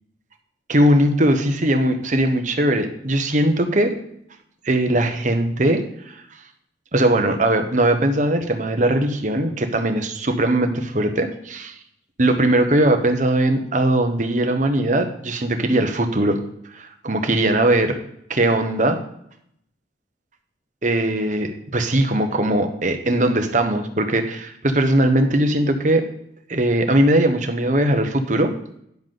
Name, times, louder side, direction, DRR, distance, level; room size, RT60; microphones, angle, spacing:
voice 1, 0.7-3.9 4.6-5.8 6.1-6.2 6.9-11.7 12.2-16.4 16.7-18.0 18.3-19.0 20.8-26.0 26.5-28.5, right 1 dB, 45° right, 6 dB, 1.2 m, -20 dB
10.5 x 7.2 x 3.9 m, 0.71 s
head